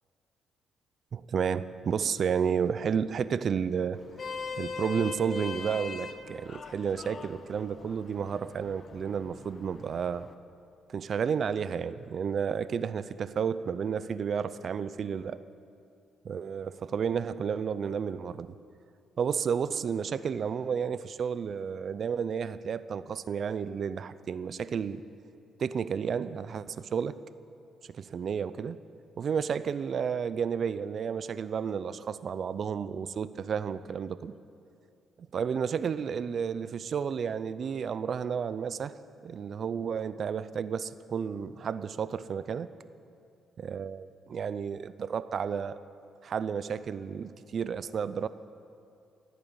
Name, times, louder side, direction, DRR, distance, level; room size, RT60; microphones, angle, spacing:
voice 1, 1.1-4.0 4.6-10.3 10.9-15.4 16.2-18.6 19.2-25.0 25.6-27.2 27.9-28.8 29.2-34.3 35.3-39.0 39.2-42.7 43.6-45.8 46.2-48.3, right 7 dB, 55° right, 15 dB, 0.5 m, -31 dB
Vehicle horn car horn honking, 3.9-10.3, left 5 dB, 45° left, 0.9 m, -41 dB
15.5 x 9.2 x 8.7 m, 2.5 s
cardioid pair, 90°, 0 cm